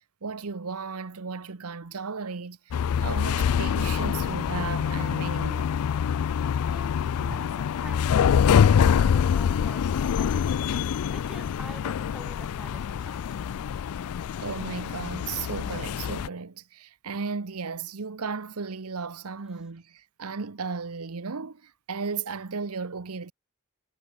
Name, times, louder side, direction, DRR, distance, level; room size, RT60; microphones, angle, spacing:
voice 1, 0.2-5.7 7.2-7.5 14.4-23.3, right 5 dB, 85° right, 0.9 m, -35 dB
sound 1, 2.7-16.3, left 7 dB, 75° left, 0.4 m, -25 dB
voice 2, 7.3-13.2, right 1 dB, 5° right, 0.8 m, -48 dB
head